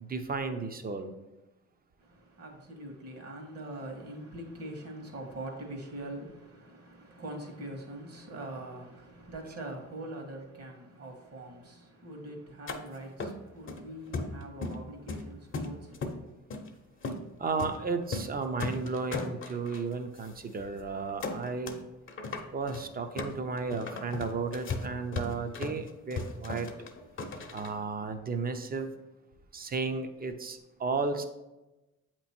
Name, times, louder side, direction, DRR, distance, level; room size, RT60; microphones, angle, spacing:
voice 1, 0.1-1.1 17.4-21.8 22.5-26.7 27.5-28.9 29.5-31.2, right 4 dB, 30° right, 0.7 m, -33 dB
voice 2, 2.0-16.3, right 1 dB, 55° right, 1.5 m, -43 dB
sound 1, 12.7-12.8 13.2-13.8 14.1-14.8 15.1-16.2 16.5-16.7 17.0-17.2 17.6-17.8 18.0-18.3 18.6-19.8 20.2-20.3 20.6-20.8 21.2-21.8 22.1-27.7, left 3 dB, 40° left, 0.8 m, -37 dB
7.8 x 3.0 x 4.3 m
cardioid pair, 90°, 30 cm